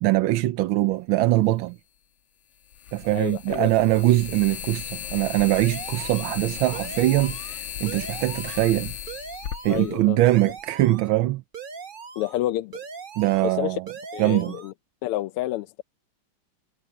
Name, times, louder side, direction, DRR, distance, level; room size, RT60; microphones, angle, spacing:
voice 1, 0.0-1.8 2.9-8.9 9.6-11.4 13.2-13.8 14.2-14.6, right 16 dB, 75° right, 1.4 m, -22 dB
sound 1, 1.2-1.3 2.7-10.6, left 9 dB, 65° left, 1.7 m, -36 dB
voice 2, 3.1-3.7 9.7-10.2 12.2-12.8 13.4-13.8 14.1-14.7 15.0-15.8, left 14 dB, 90° left, 1.6 m, -29 dB
sound 2, 5.5-6.4 6.7-7.6 7.9-8.7 9.1-9.9 10.3-11.1 11.5-12.4 12.7-13.6 13.9-14.7, right 6 dB, 45° right, 0.6 m, -40 dB
omnidirectional pair, 2.4 m